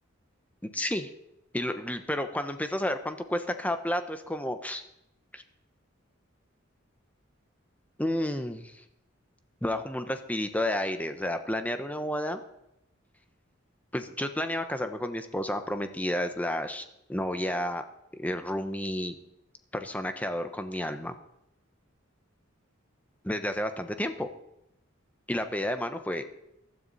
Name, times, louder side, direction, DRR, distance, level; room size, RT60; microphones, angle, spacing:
voice 1, 0.6-1.1 1.5-4.8 5.3-5.4 8.0-8.8 9.6-12.4 13.9-17.8 18.1-19.2 19.7-21.1 23.2-24.3 25.3-26.2, left 1 dB, 10° left, 8 dB, 1.0 m, -31 dB
15.0 x 13.0 x 4.2 m, 0.82 s
head